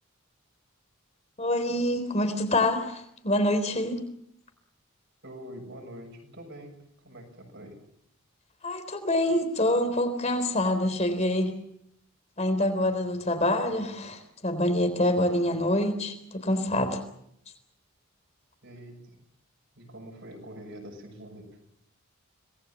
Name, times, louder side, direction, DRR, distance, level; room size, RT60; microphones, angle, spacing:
voice 1, 1.4-4.0 8.6-11.5 12.4-17.0, left 1 dB, 30° left, 9 dB, 3.8 m, -26 dB
voice 2, 5.2-6.8 7.0-7.8 18.6-19.2 19.8-21.5, equal, 55° right, 2 dB, 7.0 m, -44 dB
26.5 x 20.0 x 7.3 m, 0.73 s
head